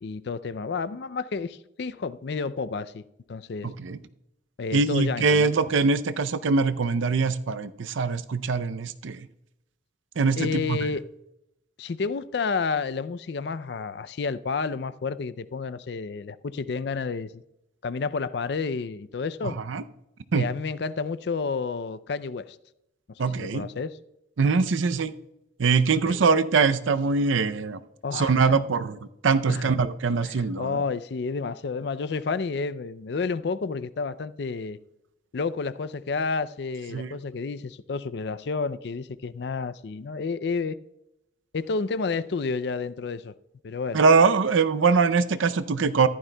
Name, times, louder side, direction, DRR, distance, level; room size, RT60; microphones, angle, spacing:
voice 1, 0.0-3.0 3.3-3.7 4.6-5.5 10.4-11.0 11.8-17.4 17.8-19.6 20.3-22.6 23.4-23.9 26.1-26.2 28.0-28.6 29.5-29.7 30.2-34.8 35.3-40.8 41.5-43.3 43.6-44.0, left 4 dB, 55° left, 0.4 m, -30 dB
voice 2, 3.6-4.0 4.7-9.3 10.2-10.8 19.4-19.8 20.3-20.5 23.2-23.7 24.4-25.1 25.6-27.8 28.1-30.8 36.9-37.1 43.9-46.1, right 4 dB, 80° right, 0.5 m, -23 dB
14.5 x 11.5 x 2.2 m
head